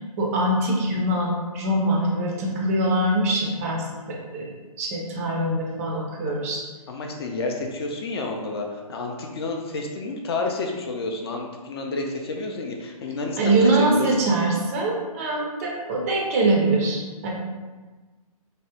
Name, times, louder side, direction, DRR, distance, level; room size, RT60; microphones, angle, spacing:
voice 1, 0.2-4.5 4.8-6.6 13.4-17.3, right 2 dB, 25° right, -1 dB, 0.4 m, -23 dB
voice 2, 6.9-13.6 13.9-14.1, left 3 dB, 40° left, 1 dB, 0.4 m, -30 dB
3.3 x 2.0 x 2.8 m, 1.3 s
hypercardioid pair, 140°, 19 cm